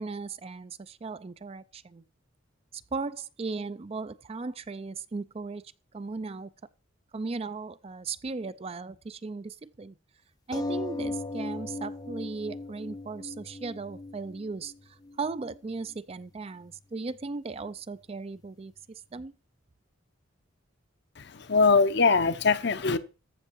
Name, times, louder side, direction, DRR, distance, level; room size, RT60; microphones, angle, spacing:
voice 1, 0.0-2.0 2.7-5.6 5.9-6.5 7.1-10.0 10.5-19.3, right 4 dB, 30° right, 0.4 m, -37 dB
sound 1, 10.5-15.5 16.3-16.4 16.7-16.8, left 2 dB, 20° left, 0.6 m, -37 dB
voice 2, 21.2-23.0, left 4 dB, 55° left, 0.8 m, -22 dB
14.0 x 6.5 x 4.6 m
head